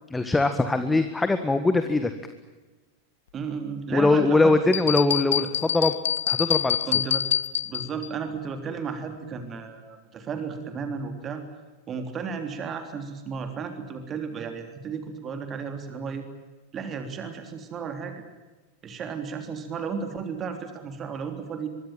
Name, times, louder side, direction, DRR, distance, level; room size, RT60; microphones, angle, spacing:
voice 1, 0.1-2.1 3.9-5.9 6.3-6.8, left 3 dB, 10° left, 9 dB, 1.7 m, -22 dB
voice 2, 3.3-4.5 5.4-5.5 6.8-7.2 7.6-11.4 11.9-16.2 16.7-18.2 18.8-21.7, right 5 dB, 25° right, 7 dB, 3.5 m, -34 dB
sound 1, 4.7-8.1, left 10 dB, 65° left, 0.8 m, -26 dB
24.5 x 23.0 x 9.1 m, 1.2 s
figure-of-eight pair, 90°, 0 cm